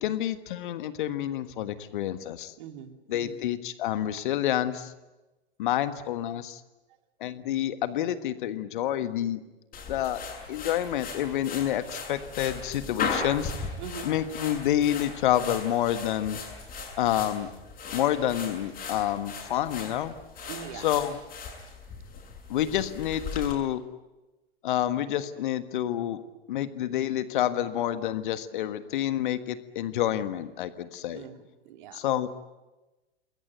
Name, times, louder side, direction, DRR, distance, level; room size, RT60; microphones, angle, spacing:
voice 1, 0.0-2.5 3.1-4.9 5.6-6.6 7.2-9.4 9.9-10.2 10.5-13.7 14.0-16.4 17.0-17.5 17.9-20.1 20.7-21.2 22.5-23.8 24.6-26.2 26.5-31.2 31.9-32.3, left 11 dB, 50° left, 12 dB, 1.5 m, -28 dB
voice 2, 2.6-3.4 13.8-14.1 20.5-20.9 31.1-32.0, right 8 dB, 45° right, 7 dB, 2.8 m, -42 dB
sound 1, 9.7-23.5, left 5 dB, 25° left, 7.2 m, -38 dB
28.0 x 21.5 x 9.2 m, 1.1 s
figure-of-eight pair, 100°, 33 cm